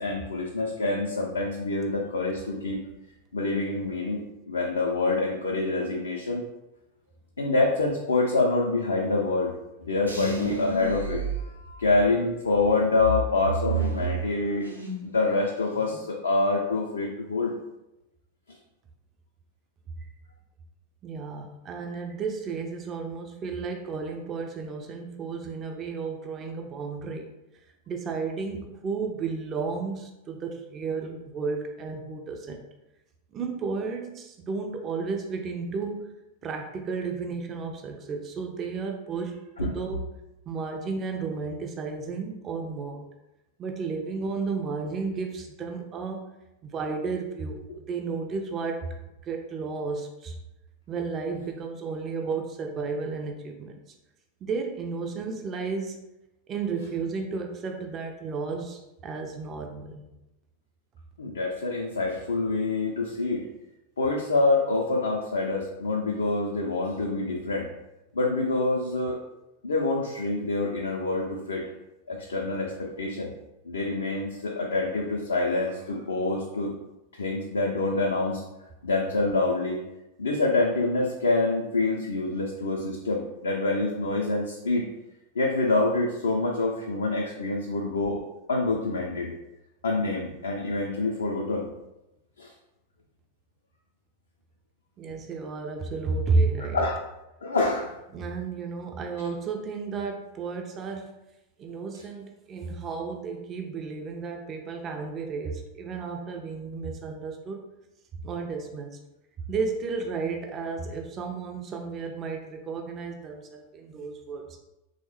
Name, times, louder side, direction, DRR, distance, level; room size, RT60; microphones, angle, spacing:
voice 1, 0.0-2.8 3.3-6.4 7.4-9.5 9.8-14.7 15.0-17.6 39.6-39.7 61.2-63.5 64.0-67.7 68.1-69.2 69.6-71.7 72.1-73.3 73.6-76.7 77.1-78.4 78.8-79.8 80.2-84.9 85.4-88.2 88.5-89.3 89.8-91.7 92.4-92.5 96.7-97.0 97.4-98.0, left 2 dB, 70° left, 0 dB, 0.3 m, -26 dB
sound 1, 10.0-12.1 12.5-15.1 15.4-16.0, right 3 dB, 80° right, 0.5 m, -31 dB
voice 2, 21.0-27.3 27.9-32.6 33.3-36.1 36.4-40.0 40.5-43.1 43.6-46.2 46.6-48.9 49.3-50.4 50.9-53.8 54.4-56.0 56.5-60.0 95.0-96.8 98.1-101.2 101.6-107.6 108.2-108.9 109.5-114.6, right 4 dB, 30° right, 3 dB, 0.3 m, -32 dB
3.1 x 2.1 x 3.0 m, 0.95 s
figure-of-eight pair, 90°, 0 cm